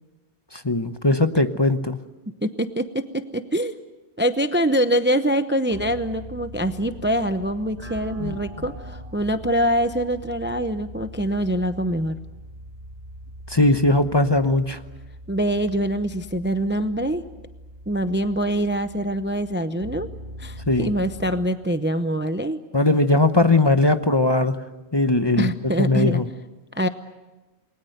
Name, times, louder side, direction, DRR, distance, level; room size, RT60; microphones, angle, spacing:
voice 1, 0.6-2.0 8.2-8.4 13.5-14.8 20.7-20.9 22.7-24.6 24.9-25.5 25.8-26.2, left 2 dB, 25° left, 9 dB, 0.9 m, -19 dB
voice 2, 2.4-3.8 4.2-12.2 15.3-17.3 17.9-20.1 20.4-22.6 25.4-26.2 26.7-26.9, right 1 dB, 10° right, 10 dB, 0.7 m, -24 dB
sound 1, 5.7-21.5, equal, 35° right, 2.5 m, -41 dB
28.5 x 21.5 x 7.9 m, 1.1 s
omnidirectional pair, 1.1 m